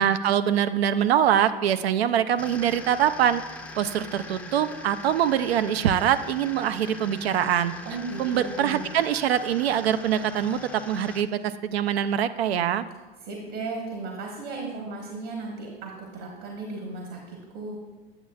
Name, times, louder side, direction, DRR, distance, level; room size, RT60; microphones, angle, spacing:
voice 1, 0.0-3.4 3.8-7.7 8.2-10.6 10.9-12.8, right 9 dB, 75° right, 12 dB, 0.5 m, -24 dB
sound 1, 2.4-11.2, left 2 dB, 5° left, 0.5 m, -42 dB
voice 2, 7.8-8.9 13.2-17.8, right 3 dB, 50° right, 0 dB, 1.4 m, -35 dB
8.9 x 7.5 x 2.4 m, 1.2 s
hypercardioid pair, 85°, 31 cm